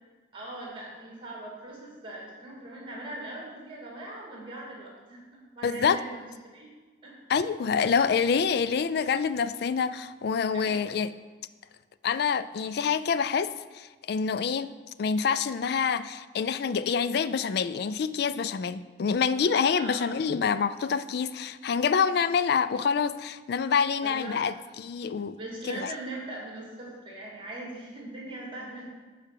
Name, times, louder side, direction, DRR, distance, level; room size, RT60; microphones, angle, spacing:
voice 1, 0.3-6.2 6.4-6.7 7.0-7.1 10.5-10.9 19.8-20.2 24.0-24.4 25.4-28.9, right 1 dB, 30° right, 2.2 m, -40 dB
voice 2, 5.6-6.0 7.3-11.1 12.0-14.7 15.0-25.4 25.7-25.9, left 6 dB, 60° left, 0.3 m, -27 dB
7.5 x 4.9 x 6.6 m
head